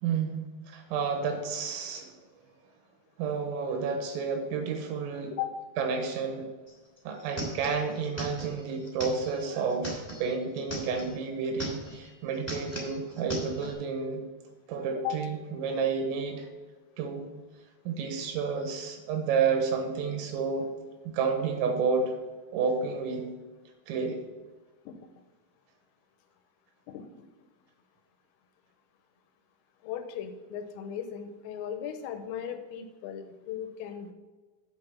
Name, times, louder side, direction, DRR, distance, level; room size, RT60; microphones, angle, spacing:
voice 1, 0.0-2.1 3.2-5.3 5.8-6.5 7.1-14.2 14.7-16.5 17.0-17.3 17.9-20.7 21.1-22.1 22.5-23.3 23.9-24.2, right 5 dB, 90° right, 4 dB, 3.8 m, -30 dB
sound 1, 6.7-6.8 7.0-11.1 11.5-12.1 12.3-13.7, right 1 dB, 5° left, 1.7 m, -38 dB
voice 2, 29.8-34.1, left 9 dB, 90° left, 7 dB, 3.4 m, -37 dB
8.4 x 5.9 x 5.8 m, 1.3 s
omnidirectional pair, 5.9 m